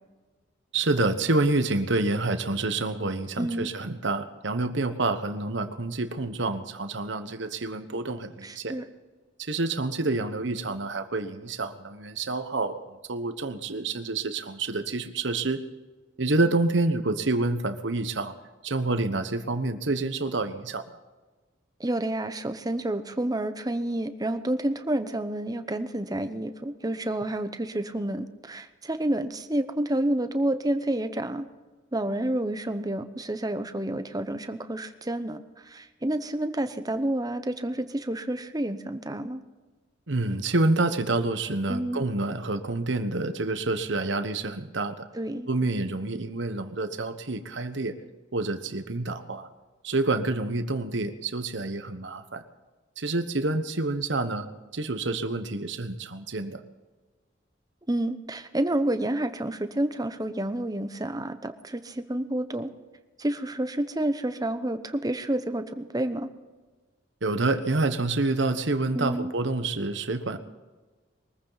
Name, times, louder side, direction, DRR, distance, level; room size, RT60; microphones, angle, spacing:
voice 1, 0.7-8.8 9.4-15.6 16.2-18.3 18.6-21.0 40.1-45.1 45.5-48.0 48.3-49.5 49.8-52.4 53.0-54.5 54.7-56.6 67.2-70.4, right 2 dB, 70° right, 10 dB, 1.2 m, -28 dB
voice 2, 3.4-3.7 8.4-8.8 21.8-31.5 31.9-39.4 41.7-42.1 45.1-45.5 57.9-62.7 63.2-66.3 68.9-69.3, right 1 dB, 20° right, 10 dB, 0.9 m, -29 dB
22.5 x 14.5 x 4.1 m, 1.3 s
head